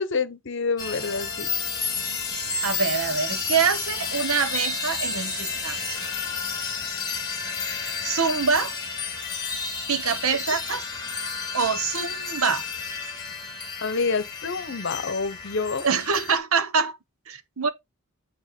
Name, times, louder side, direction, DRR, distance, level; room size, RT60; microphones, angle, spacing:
voice 1, 0.0-1.5 10.5-10.6 13.8-15.8, left 4 dB, 60° left, 0.8 m, -27 dB
sound 1, 0.8-16.4, left 5 dB, 20° left, 1.8 m, -31 dB
voice 2, 2.6-6.0 8.0-8.7 9.9-10.9 11.5-12.6 15.8-17.0 17.3-17.7, right 5 dB, 80° right, 0.9 m, -25 dB
8.8 x 3.0 x 4.3 m
head